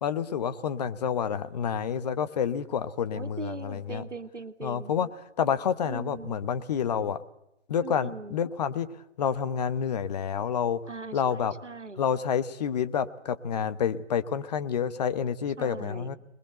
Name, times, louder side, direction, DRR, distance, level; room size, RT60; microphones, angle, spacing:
voice 1, 0.0-4.0 4.6-5.1 5.4-7.2 7.7-8.9 9.2-10.8 11.1-11.5 12.0-16.2, left 7 dB, 35° left, 13 dB, 1.0 m, -28 dB
voice 2, 3.1-4.9 5.8-6.4 7.8-8.4 10.9-12.0 15.6-16.1, right 3 dB, 90° right, 8 dB, 2.1 m, -40 dB
25.5 x 21.5 x 7.8 m, 0.81 s
figure-of-eight pair, 140°, 35 cm